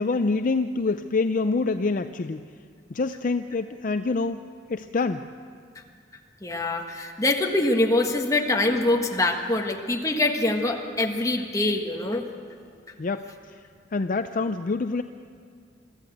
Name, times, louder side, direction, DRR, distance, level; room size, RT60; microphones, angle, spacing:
voice 1, 0.0-2.5 2.9-4.4 4.7-5.3 13.0-13.6 13.9-15.0, left 3 dB, 45° left, 9 dB, 0.5 m, -26 dB
voice 2, 6.4-12.2, left 2 dB, 20° left, 2 dB, 1.5 m, -24 dB
24.0 x 14.0 x 7.9 m, 2.3 s
head